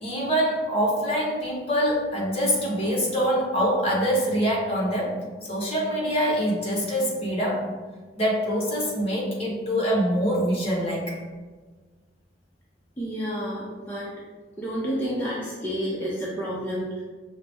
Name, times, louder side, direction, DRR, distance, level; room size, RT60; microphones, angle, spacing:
voice 1, 0.0-5.1 5.4-7.7 8.2-11.2, equal, 35° left, -4 dB, 1.0 m, -24 dB
voice 2, 13.0-14.1 14.6-17.0, equal, 10° left, -7 dB, 0.5 m, -30 dB
5.4 x 2.0 x 3.4 m, 1.4 s
head